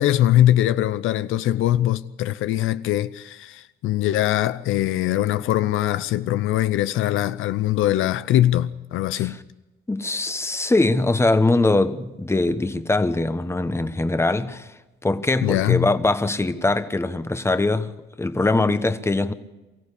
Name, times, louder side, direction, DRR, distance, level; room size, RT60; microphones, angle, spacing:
voice 1, 0.0-9.4 15.4-15.9, left 13 dB, 85° left, 0.7 m, -22 dB
voice 2, 9.9-14.7 15.0-17.9 18.2-19.3, left 2 dB, 15° left, 1.1 m, -22 dB
23.5 x 15.0 x 8.4 m
cardioid pair, 90°, 20 cm